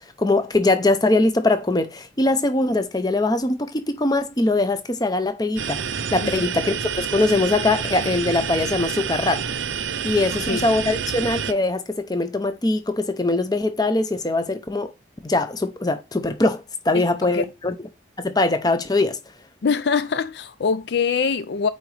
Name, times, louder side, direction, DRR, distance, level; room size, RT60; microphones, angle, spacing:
voice 1, 0.2-9.4 10.0-14.9 15.2-17.7 18.2-19.2, left 2 dB, 20° left, 0.7 m, -22 dB
sound 1, 5.6-11.5, right 7 dB, 90° right, 0.6 m, -28 dB
voice 2, 16.9-17.4 19.6-21.7, left 5 dB, 60° left, 0.4 m, -23 dB
8.6 x 4.0 x 3.3 m
head